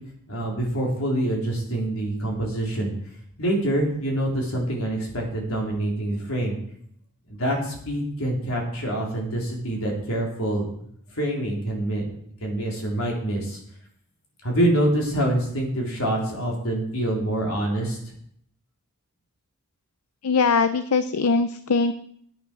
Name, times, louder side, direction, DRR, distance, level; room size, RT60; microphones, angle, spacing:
voice 1, 0.3-2.9 3.4-6.6 7.4-10.7 11.1-13.6 14.4-18.0, right 1 dB, 70° left, -1 dB, 3.7 m, -26 dB
voice 2, 20.2-21.9, left 4 dB, 85° left, 12 dB, 0.6 m, -21 dB
10.5 x 8.7 x 6.1 m, 0.67 s
head